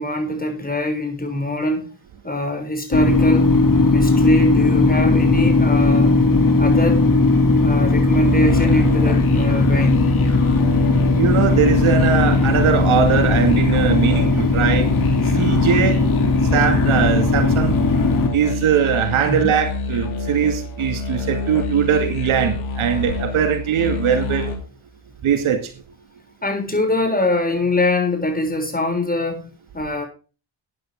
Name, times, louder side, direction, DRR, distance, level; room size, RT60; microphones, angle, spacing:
voice 1, 0.0-1.9 2.2-3.5 3.9-6.2 6.6-7.1 7.6-10.1 19.2-19.6 26.4-29.5 29.7-30.0, left 1 dB, 20° left, 6.9 m, -22 dB
sound 1, 2.9-18.3, left 3 dB, 40° left, 2.8 m, -17 dB
sound 2, 8.2-24.6, left 3 dB, 80° left, 3.1 m, -27 dB
voice 2, 11.1-14.9 15.3-16.0 16.5-17.9 18.3-24.5 25.2-25.7, right 8 dB, 80° right, 2.2 m, -20 dB
14.5 x 9.3 x 3.7 m
supercardioid pair, 55°, 49 cm